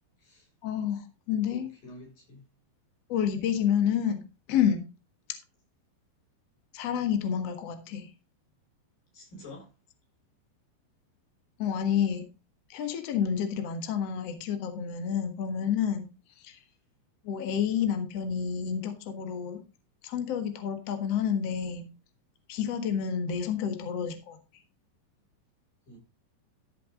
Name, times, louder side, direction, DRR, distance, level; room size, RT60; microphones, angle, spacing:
voice 1, 0.6-1.7 3.1-4.2 4.5-4.8 6.7-8.1 11.6-12.2 12.7-16.1 16.4-16.6 17.2-19.6 20.0-21.9 22.5-24.4, left 8 dB, 75° left, 1.4 m, -29 dB
voice 2, 1.5-2.5 9.1-9.7 25.9-26.0, left 1 dB, 45° left, 7.7 m, -47 dB
13.5 x 6.8 x 3.9 m
omnidirectional pair, 5.4 m